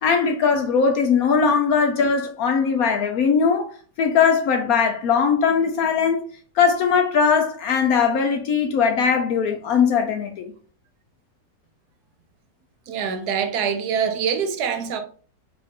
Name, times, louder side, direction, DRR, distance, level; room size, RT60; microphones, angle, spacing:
voice 1, 0.0-3.7 4.0-6.3 6.6-10.5, left 6 dB, 70° left, 0.8 m, -20 dB
voice 2, 12.9-15.0, right 7 dB, 70° right, 1.0 m, -24 dB
4.7 x 2.5 x 3.5 m
omnidirectional pair, 2.0 m